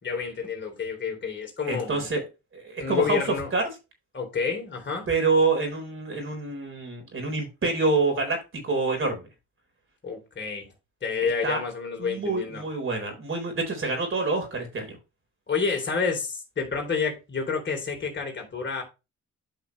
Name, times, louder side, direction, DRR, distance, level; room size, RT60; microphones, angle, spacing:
voice 1, 0.0-2.1 2.8-3.5 4.1-5.1 10.0-10.7 11.0-12.6 15.5-18.8, left 5 dB, 40° left, 3.5 m, -29 dB
voice 2, 1.7-2.2 2.5-3.2 3.5-3.6 5.1-8.4 8.6-9.2 11.4-11.6 12.0-15.0, right 3 dB, 45° right, 4.3 m, -26 dB
10.0 x 5.6 x 3.2 m
cardioid pair, 90°, 30 cm